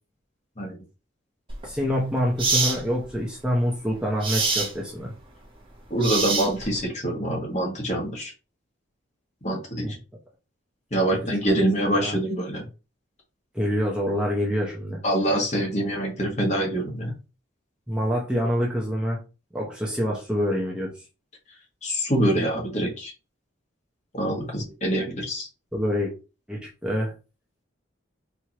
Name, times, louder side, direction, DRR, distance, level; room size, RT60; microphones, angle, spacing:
sound 1, 1.5-1.7 2.4-2.8 4.2-4.7 6.0-6.8, right 4 dB, 25° right, 1.0 m, -24 dB
voice 1, 1.6-5.1 9.8-9.9 11.5-11.6 11.9-12.1 13.5-15.0 17.9-19.2 19.5-20.9 25.7-26.1 26.5-27.1, equal, 5° right, -3 dB, 0.7 m, -26 dB
voice 2, 5.9-8.3 9.4-10.0 10.9-12.6 15.0-17.1 21.8-23.1 24.1-25.5, right 1 dB, 35° left, 0 dB, 1.3 m, -25 dB
4.5 x 2.6 x 2.9 m, 0.31 s
head